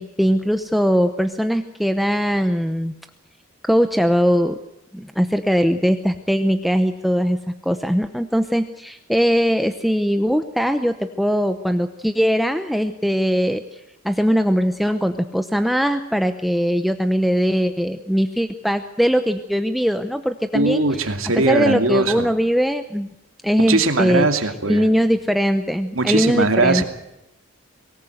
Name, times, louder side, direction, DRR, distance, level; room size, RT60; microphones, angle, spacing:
voice 1, 0.0-2.9 3.6-4.6 4.9-7.4 7.6-13.8 14.0-23.1 23.4-24.3 24.7-26.8, equal, ahead, 7 dB, 0.8 m, -20 dB
voice 2, 20.5-22.3 23.6-24.9 25.9-26.8, right 3 dB, 80° right, 6 dB, 2.5 m, -20 dB
23.5 x 19.0 x 7.9 m, 0.89 s
head